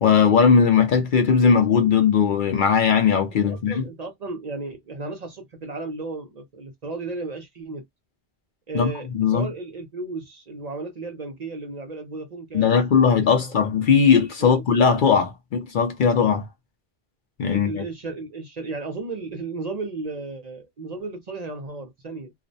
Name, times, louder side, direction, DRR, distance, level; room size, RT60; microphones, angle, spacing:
voice 1, 0.0-3.8 8.7-9.5 12.5-16.5 17.4-17.8, left 6 dB, 60° left, 0.6 m, -19 dB
voice 2, 3.3-7.8 8.7-9.1 9.3-13.6 14.4-14.6 17.5-22.3, right 3 dB, 45° right, 0.6 m, -34 dB
2.4 x 2.0 x 2.6 m
omnidirectional pair, 1.1 m